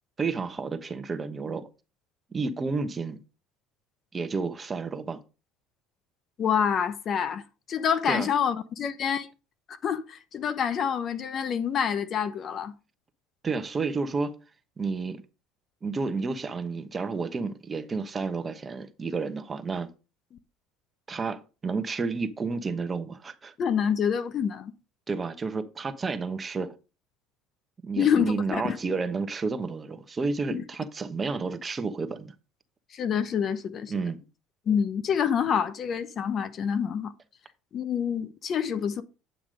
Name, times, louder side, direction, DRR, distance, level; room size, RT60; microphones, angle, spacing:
voice 1, 0.2-1.7 2.3-3.2 4.1-5.2 8.1-8.3 13.4-14.4 14.8-15.2 15.8-19.9 21.1-23.5 25.1-26.7 27.8-32.3 33.9-34.2, right 4 dB, 25° right, 1.2 m, -31 dB
voice 2, 6.4-7.4 7.7-9.3 9.8-12.7 23.6-24.7 28.0-28.8 30.5-30.6 32.9-33.9 34.7-37.1 37.7-39.0, left 7 dB, 40° left, 0.9 m, -27 dB
9.2 x 5.9 x 5.1 m
supercardioid pair, 105°, 0 cm